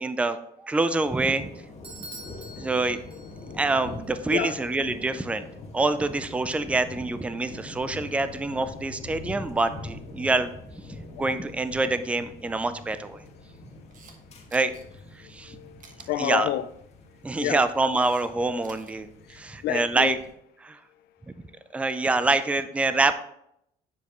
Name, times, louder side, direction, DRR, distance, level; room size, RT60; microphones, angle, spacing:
voice 1, 0.0-1.5 2.6-3.0 3.5-5.5 5.7-10.5 10.9-13.2 14.5-14.7 15.1-15.6 16.2-16.5 17.2-20.2 20.7-20.8 21.7-23.1, right 3 dB, 5° right, 0.4 m, -26 dB
sound 1, 1.0-20.3, left 2 dB, 40° left, 1.7 m, -44 dB
Bell / Doorbell, 1.8-3.7, right 1 dB, 30° right, 1.2 m, -45 dB
voice 2, 2.2-2.7 3.1-3.8 4.3-5.1 10.2-10.3 11.0-11.5 13.2-13.7 15.2-16.7 17.0-17.7 19.0-20.2 20.9-21.7, left 11 dB, 70° left, 0.4 m, -34 dB
Camera, 13.7-14.2 14.5-14.8 15.8-16.1 17.4-18.3 18.5-18.9, right 5 dB, 50° right, 1.3 m, -52 dB
9.5 x 5.1 x 3.0 m
cardioid pair, 110°, 17 cm